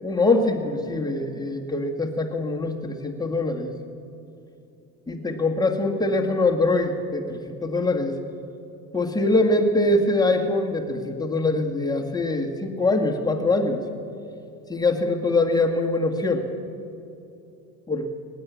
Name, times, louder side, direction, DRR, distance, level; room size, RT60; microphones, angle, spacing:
voice 1, 0.0-3.7 5.1-8.2 8.9-13.8 14.7-16.4 17.9-18.0, left 2 dB, 10° left, 1 dB, 1.8 m, -23 dB
18.0 x 10.0 x 7.0 m, 2.6 s
hypercardioid pair, 80°, 45 cm